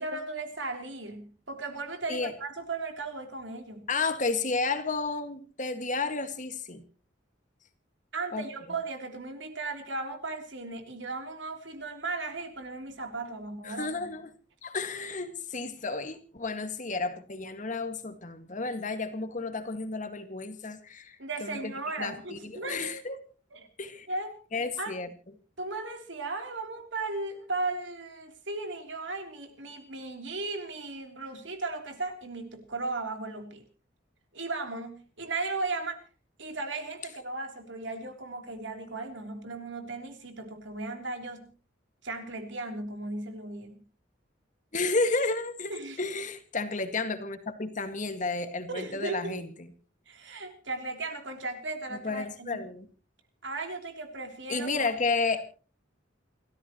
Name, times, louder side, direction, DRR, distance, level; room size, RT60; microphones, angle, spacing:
voice 1, 0.0-3.9 8.1-13.9 21.2-22.9 23.5-23.7 24.1-24.4 24.8-25.0 25.6-33.6 34.3-36.0 36.4-41.5 42.0-43.8 45.7-46.1 48.7-49.5 50.1-52.6 53.4-54.8, right 3 dB, 70° right, 5 dB, 3.3 m, -36 dB
voice 2, 3.9-6.8 8.3-8.5 13.6-14.3 14.6-21.7 22.0-23.2 23.8-24.1 24.5-25.1 44.7-49.5 51.9-52.9 54.5-55.4, left 3 dB, 40° left, 8 dB, 1.9 m, -32 dB
29.5 x 13.5 x 3.0 m, 0.38 s
head